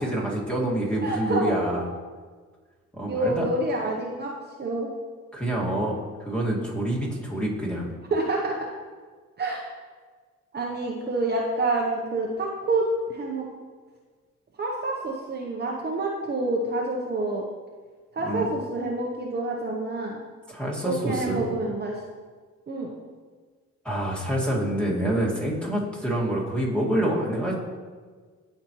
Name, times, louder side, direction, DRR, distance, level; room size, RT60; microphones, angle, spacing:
voice 1, 0.0-1.9 2.9-3.5 5.3-5.9 6.2-7.9 18.2-18.5 20.5-21.5 23.8-27.5, right 1 dB, 5° left, -4 dB, 2.0 m, -27 dB
voice 2, 1.0-1.8 3.1-4.3 4.6-4.9 8.1-8.6 9.4-9.6 10.5-13.5 14.6-17.4 18.1-20.2 20.8-22.0 22.7-22.9, right 2 dB, 35° right, -1 dB, 0.9 m, -27 dB
13.0 x 4.3 x 3.0 m, 1.5 s
cardioid pair, 90°, 30 cm